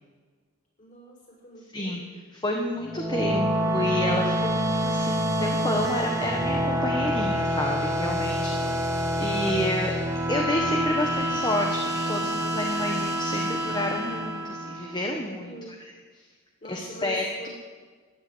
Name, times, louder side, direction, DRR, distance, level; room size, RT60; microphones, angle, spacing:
voice 1, 0.8-2.2 8.4-8.9 15.3-15.8 16.6-17.5, right 1 dB, 35° left, -2 dB, 6.1 m, -44 dB
voice 2, 2.3-8.7 9.2-9.9 10.3-11.8 12.1-15.5 16.7-17.5, left 1 dB, 20° left, 1 dB, 1.3 m, -29 dB
sound 1, 2.8-15.2, equal, 15° right, 1.5 m, -27 dB
14.5 x 11.0 x 8.6 m, 1.5 s
head